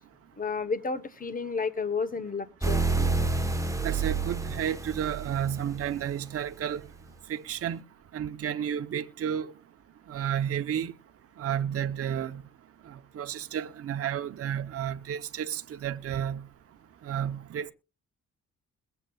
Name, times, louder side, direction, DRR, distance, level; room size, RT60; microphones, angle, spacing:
voice 1, 0.4-2.9, left 4 dB, 30° left, 1.0 m, -31 dB
sound 1, 2.6-6.2, right 3 dB, 10° right, 1.1 m, -29 dB
voice 2, 3.8-6.8 7.3-7.8 8.1-9.5 10.1-10.9 11.4-12.4 13.2-16.4 17.1-17.7, right 9 dB, 50° right, 0.8 m, -31 dB
21.5 x 7.9 x 2.3 m
cardioid pair, 90°, 30 cm